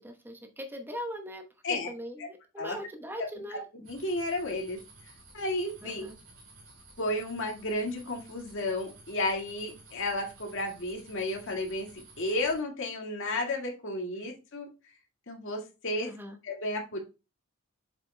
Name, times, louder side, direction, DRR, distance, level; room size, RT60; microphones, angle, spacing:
voice 1, 0.0-1.4 1.9-3.6 5.8-6.2 16.0-16.4, equal, 10° right, 4 dB, 1.0 m, -40 dB
voice 2, 3.2-4.8 5.3-6.1 7.0-14.7 15.3-16.1 16.4-17.0, left 1 dB, 60° left, 1 dB, 2.0 m, -33 dB
sound 1, 3.8-12.6, right 2 dB, 65° right, 3.8 m, -54 dB
7.6 x 7.4 x 2.2 m, 0.30 s
head